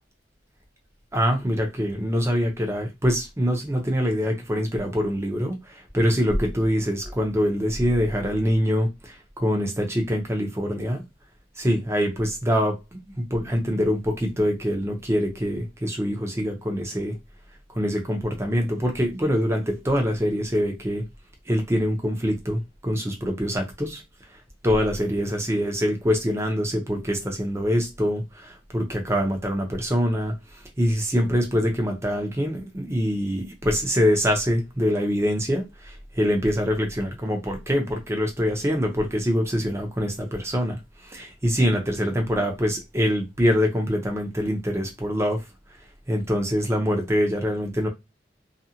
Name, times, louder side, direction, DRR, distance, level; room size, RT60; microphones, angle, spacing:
voice 1, 1.1-11.0 11.6-17.1 17.7-21.0 21.5-24.0 24.6-30.3 30.8-45.4 46.1-47.9, equal, 15° right, 0.7 m, -24 dB
2.5 x 2.3 x 2.8 m
head